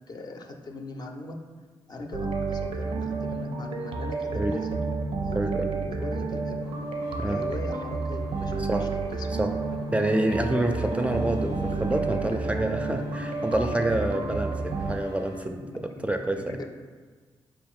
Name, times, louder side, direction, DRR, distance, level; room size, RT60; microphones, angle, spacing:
voice 1, 0.1-1.3 1.9-4.9 5.2-6.8 7.3-9.3 15.5-16.7, left 2 dB, 45° left, 4 dB, 0.5 m, -40 dB
sound 1, 2.1-14.9, right 3 dB, 70° right, 0.5 m, -30 dB
voice 2, 5.3-5.7 7.2-7.4 8.6-8.9 9.4-9.5 9.9-16.6, right 1 dB, 10° right, 4 dB, 0.4 m, -27 dB
sound 2, 6.6-15.5, left 4 dB, 85° left, 0.7 m, -44 dB
4.5 x 2.5 x 3.6 m, 1.5 s
supercardioid pair, 55°, 10 cm